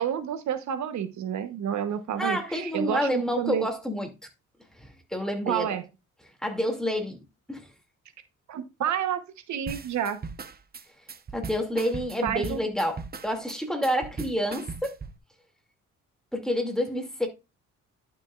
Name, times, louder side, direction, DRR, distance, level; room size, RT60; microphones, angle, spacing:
voice 1, 0.0-3.7 5.5-5.9 8.5-10.2 12.2-12.6, right 9 dB, 70° right, 1.0 m, -30 dB
voice 2, 2.2-4.1 4.7-5.7 6.4-7.2 7.5-7.7 11.3-15.0 16.3-17.3, equal, ahead, 2.4 m, -28 dB
sound 1, 9.7-15.2, right 5 dB, 30° right, 0.9 m, -39 dB
11.5 x 6.2 x 2.4 m
cardioid pair, 90°, 30 cm